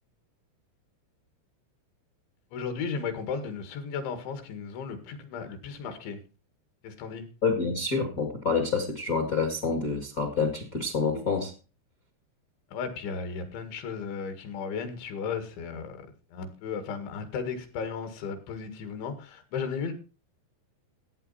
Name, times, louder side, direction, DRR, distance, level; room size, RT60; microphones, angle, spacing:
voice 1, 2.5-6.2 6.8-7.3 12.7-16.0 16.3-19.9, left 5 dB, 80° left, 4.4 m, -35 dB
voice 2, 7.4-11.5, left 4 dB, 60° left, 0.9 m, -27 dB
15.0 x 8.9 x 4.2 m
omnidirectional pair, 5.2 m